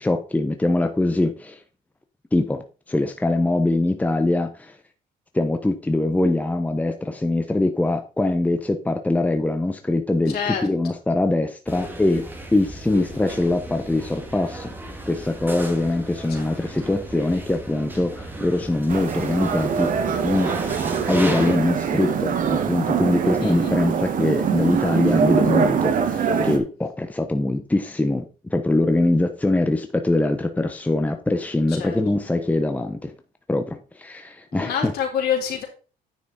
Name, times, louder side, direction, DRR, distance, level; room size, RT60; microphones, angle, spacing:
voice 1, 0.0-1.6 2.3-2.6 2.9-4.7 5.3-12.3 12.5-14.7 15.1-19.9 20.2-20.5 21.1-33.1 33.5-34.9, left 2 dB, 10° left, 6 dB, 1.1 m, -23 dB
voice 2, 10.3-10.7 12.9-13.3 16.4-16.5 23.4-23.9 31.7-32.0 34.5-35.6, left 8 dB, 70° left, 2 dB, 3.7 m, -28 dB
sound 1, 11.7-21.6, right 1 dB, 10° right, 2.3 m, -34 dB
sound 2, 18.9-26.6, right 6 dB, 55° right, 1.8 m, -23 dB
9.7 x 6.0 x 4.3 m, 0.34 s
cardioid pair, 110°, 17 cm